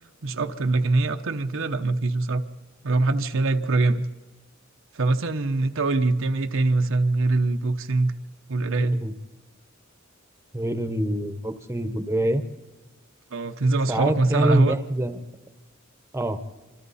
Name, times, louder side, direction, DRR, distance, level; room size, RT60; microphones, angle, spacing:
voice 1, 0.2-2.4 2.8-4.1 4.9-8.1 8.5-9.0 13.3-14.8, right 3 dB, 70° right, 7 dB, 0.9 m, -23 dB
voice 2, 8.8-9.1 10.5-12.4 13.9-15.2 16.1-16.4, right 1 dB, 15° right, 9 dB, 1.0 m, -26 dB
26.0 x 25.5 x 4.2 m, 1.2 s
head